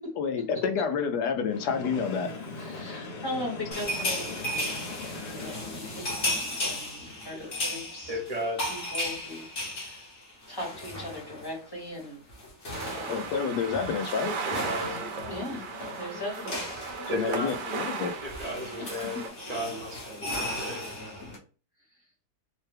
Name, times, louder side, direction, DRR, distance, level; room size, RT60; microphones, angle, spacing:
voice 1, 0.2-2.3 13.1-14.3 17.1-18.1, left 6 dB, 90° left, 1.2 m, -29 dB
Train, 1.4-6.5, left 3 dB, 75° left, 1.5 m, -40 dB
voice 2, 2.6-4.9 5.3-8.2 8.7-10.0 10.5-12.2 12.9-13.2 15.3-16.9 18.8-19.2, left 1 dB, 15° left, 1.0 m, -39 dB
sound 1, 3.7-11.6 11.8-12.0 12.3-21.4, left 1 dB, 45° left, 1.1 m, -36 dB
voice 3, 8.1-8.7 14.4-15.6 17.1-17.6 18.2-19.2 19.5-21.0, equal, 40° right, 0.6 m, -35 dB
sound 2, 12.7-19.3, right 4 dB, 65° right, 1.0 m, -36 dB
3.2 x 2.1 x 3.2 m
omnidirectional pair, 1.7 m